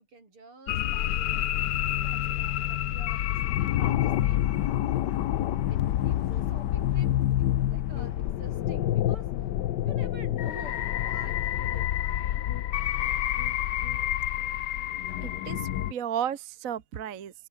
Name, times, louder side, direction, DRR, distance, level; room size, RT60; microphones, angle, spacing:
voice 1, 0.0-1.7 2.0-4.7 5.7-9.3 9.8-12.5, right 3 dB, 85° right, 6.8 m, -49 dB
sound 1, 0.7-15.9, left 12 dB, 65° left, 1.2 m, -28 dB
voice 2, 15.2-17.3, right 9 dB, 45° right, 1.3 m, -33 dB
omnidirectional pair, 2.3 m